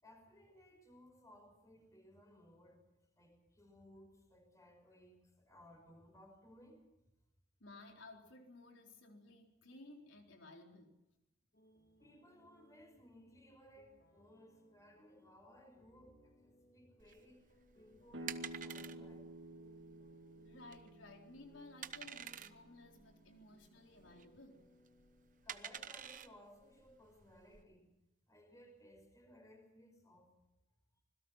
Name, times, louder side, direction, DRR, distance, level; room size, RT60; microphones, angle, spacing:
voice 1, 0.0-2.8 3.2-6.9 12.0-17.4 17.7-19.3 25.4-27.9 28.3-30.3, equal, 15° left, 4 dB, 5.8 m, -61 dB
voice 2, 7.6-11.0 20.4-24.7, left 2 dB, 85° left, 2 dB, 4.2 m, -57 dB
sound 1, 11.5-26.1, equal, 60° left, 2.0 m, -70 dB
sound 2, 17.0-27.6, right 9 dB, 40° right, 0.9 m, -50 dB
sound 3, 18.1-23.7, right 1 dB, 70° right, 1.8 m, -52 dB
26.0 x 21.0 x 5.8 m, 0.93 s
head